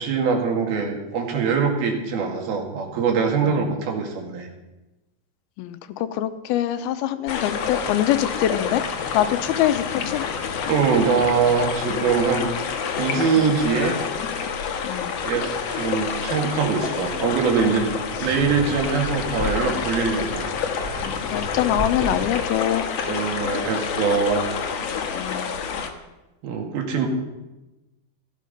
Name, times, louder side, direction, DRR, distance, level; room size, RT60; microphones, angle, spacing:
voice 1, 0.0-4.5 10.7-14.0 15.2-17.9 18.2-20.5 23.1-24.5 26.4-27.1, right 5 dB, 80° right, 2 dB, 4.0 m, -23 dB
voice 2, 3.4-3.8 5.6-8.8 9.1-10.3 14.8-15.2 21.0-22.9 25.1-25.5, left 12 dB, 85° left, 11 dB, 2.7 m, -24 dB
sound 1, 7.3-25.9, left 6 dB, 65° left, 1.7 m, -28 dB
Wind, 17.5-22.5, right 1 dB, 40° right, 3.0 m, -36 dB
16.0 x 13.0 x 5.4 m, 1.0 s
omnidirectional pair, 4.3 m